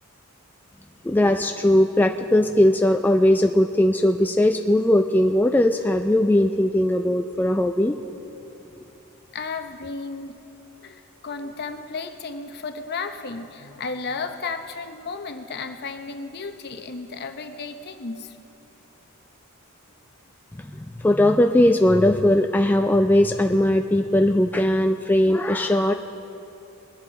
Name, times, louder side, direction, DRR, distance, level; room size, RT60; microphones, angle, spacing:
voice 1, 1.0-7.9 20.7-25.9, left 1 dB, 10° left, 4 dB, 0.3 m, -19 dB
voice 2, 9.3-10.4 10.8-18.4, left 4 dB, 50° left, 7 dB, 0.8 m, -33 dB
21.0 x 10.5 x 3.8 m, 2.7 s
head